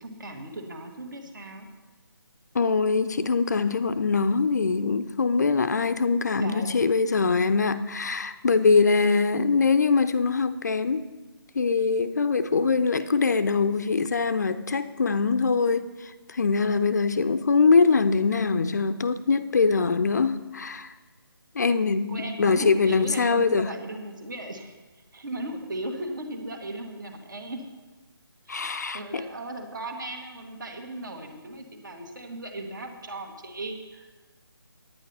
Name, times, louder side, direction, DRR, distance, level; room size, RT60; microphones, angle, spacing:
voice 1, 0.0-1.7 6.4-6.9 22.1-24.8 25.1-27.6 28.5-34.1, right 1 dB, 55° right, 4 dB, 1.8 m, -36 dB
voice 2, 2.5-11.0 11.5-20.9 21.6-23.7 28.5-29.3, left 4 dB, 45° left, 12 dB, 0.5 m, -23 dB
9.7 x 9.2 x 5.4 m, 1.2 s
figure-of-eight pair, 165°, 13 cm